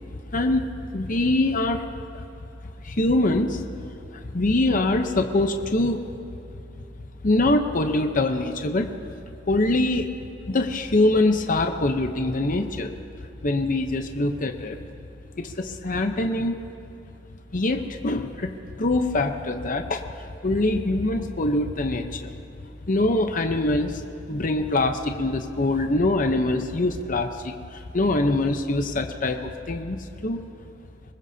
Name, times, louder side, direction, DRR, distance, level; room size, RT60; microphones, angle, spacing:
voice 1, 0.3-1.8 2.1-2.2 2.8-3.6 4.1-6.0 7.2-8.9 9.5-10.1 10.5-12.9 13.4-14.8 15.4-16.6 17.5-18.5 18.8-22.3 22.8-30.4, left 2 dB, 45° left, 5 dB, 0.8 m, -24 dB
24.0 x 20.5 x 2.8 m, 2.9 s
head